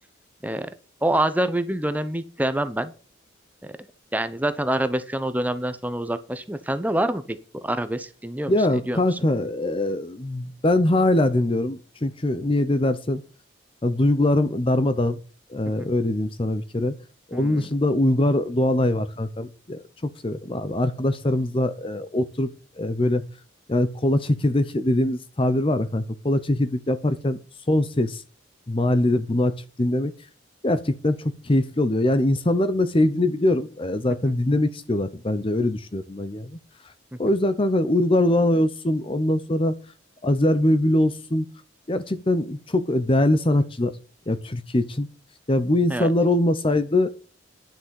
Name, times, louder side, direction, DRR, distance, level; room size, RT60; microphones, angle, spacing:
voice 1, 1.0-2.9 3.6-3.7 4.1-9.2 15.8-15.9 17.3-17.7 37.1-37.2 45.9-46.1, right 1 dB, 10° right, 11 dB, 0.8 m, -26 dB
voice 2, 8.5-13.2 13.8-15.2 15.5-17.0 17.3-22.5 22.8-23.2 23.7-27.4 27.7-28.2 28.7-30.1 30.6-36.6 37.2-39.7 40.2-41.5 41.9-44.0 44.3-45.1 45.5-47.1, left 1 dB, 25° left, 13 dB, 0.7 m, -22 dB
10.5 x 6.3 x 7.0 m, 0.37 s
head